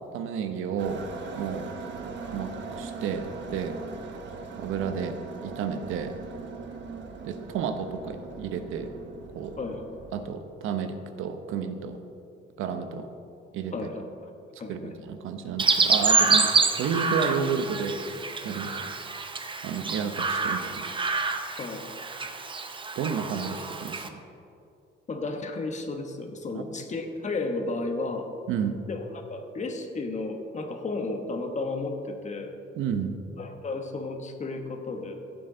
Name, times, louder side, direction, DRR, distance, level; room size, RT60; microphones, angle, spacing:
voice 1, 0.1-1.0 1.3-1.7 2.3-3.8 4.6-5.2 5.4-6.2 7.2-8.9 9.3-9.5 10.1-12.0 12.6-13.1 13.5-13.9 14.7-18.9 19.6-20.9 22.2-22.4 23.0-24.2 26.5-26.7 28.5-28.8 32.7-33.2, right 6 dB, 85° right, 8 dB, 0.9 m, -31 dB
sound 1, 0.8-10.3, right 4 dB, 60° right, 1.1 m, -40 dB
voice 2, 13.7-14.3 14.6-14.9 21.6-21.8 25.1-28.3 28.9-29.0 29.3-32.5 33.4-35.1, left 3 dB, 35° left, 5 dB, 1.3 m, -33 dB
Chirp tweet, 15.6-24.1, right 4 dB, 25° right, 0.8 m, -27 dB
14.5 x 7.9 x 3.9 m, 2.6 s
cardioid pair, 105°, 21 cm